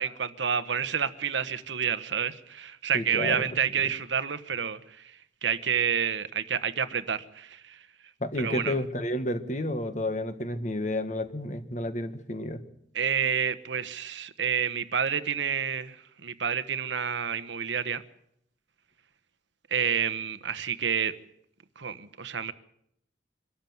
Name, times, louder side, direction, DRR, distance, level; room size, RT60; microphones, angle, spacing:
voice 1, 0.0-5.1 5.4-7.8 8.4-8.7 12.9-18.0 19.7-21.1 21.8-22.5, right 7 dB, 80° right, 1.2 m, -29 dB
voice 2, 2.9-3.9 8.2-12.6, left 1 dB, 40° left, 1.6 m, -31 dB
24.5 x 13.0 x 9.4 m
head